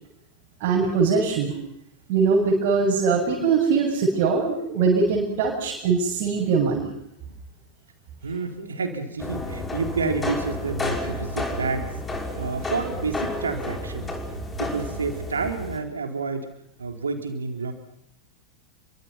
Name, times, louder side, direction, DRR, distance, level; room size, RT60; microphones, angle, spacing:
voice 1, 0.6-1.5 2.1-6.9, right 5 dB, 45° right, -1 dB, 7.2 m, -22 dB
voice 2, 8.2-11.9 12.3-14.1 14.6-16.5 16.8-17.7, right 4 dB, 75° right, 5 dB, 3.9 m, -29 dB
sound 1, 9.2-15.8, left 1 dB, 15° left, 5.6 m, -31 dB
29.5 x 24.5 x 5.9 m, 0.78 s
figure-of-eight pair, 90°, 0 cm